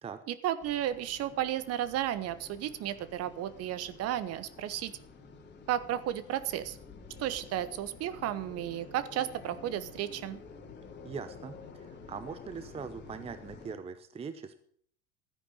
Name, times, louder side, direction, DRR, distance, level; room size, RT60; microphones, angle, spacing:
voice 1, 0.3-4.9 5.7-6.8 7.2-10.4, right 12 dB, 35° right, 14 dB, 1.1 m, -33 dB
sound 1, 0.6-13.7, left 4 dB, 25° left, 2.8 m, -50 dB
voice 2, 11.0-14.6, right 6 dB, 15° right, 12 dB, 0.8 m, -42 dB
13.5 x 9.9 x 6.5 m, 0.62 s
figure-of-eight pair, 80°, 40 cm